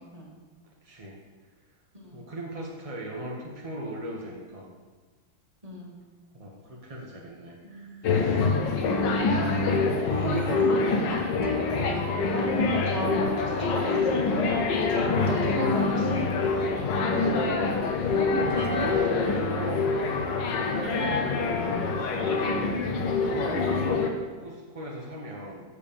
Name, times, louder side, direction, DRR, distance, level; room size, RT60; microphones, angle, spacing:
voice 1, 0.8-1.2 2.1-4.7 6.3-8.5 9.0-10.6 11.6-11.8 16.4-16.6 17.1-17.8 18.3-23.8 24.4-25.6, equal, 35° right, -3 dB, 0.5 m, -38 dB
voice 2, 5.6-5.9 7.6-8.0 10.2-11.4 11.7-12.0 12.3-14.5 14.9-16.2 23.7-24.0, left 1 dB, 20° right, -4 dB, 1.8 m, -35 dB
sound 1, 8.0-24.1, left 4 dB, 65° left, 1.4 m, -25 dB
sound 2, 10.1-17.9 18.5-19.7, right 8 dB, 85° right, 1.6 m, -43 dB
7.2 x 5.1 x 6.9 m, 1.4 s
omnidirectional pair, 2.2 m